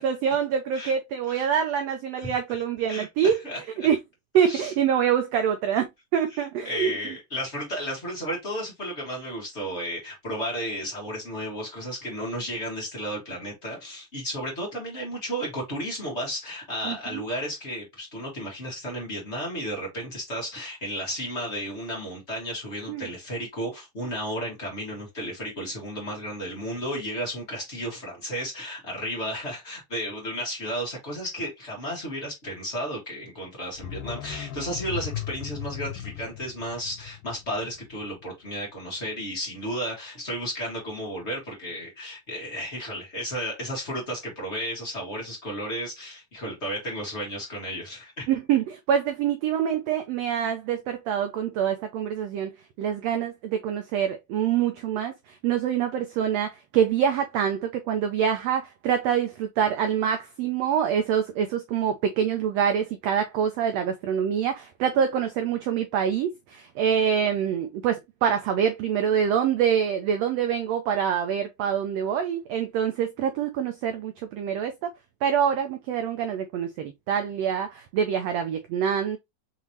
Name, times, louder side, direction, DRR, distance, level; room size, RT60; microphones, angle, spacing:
voice 1, 0.0-3.4 3.8-4.0 4.3-7.1 16.8-17.2 22.9-23.1 48.3-74.9 75.2-79.2, right 8 dB, 85° right, 1.4 m, -25 dB
voice 2, 2.9-3.9 4.4-4.7 6.6-48.3, equal, 35° left, 1.1 m, -33 dB
sound 1, 33.8-38.5 38.8-38.9, left 12 dB, 85° left, 2.1 m, -37 dB
5.7 x 3.1 x 2.7 m
omnidirectional pair, 3.6 m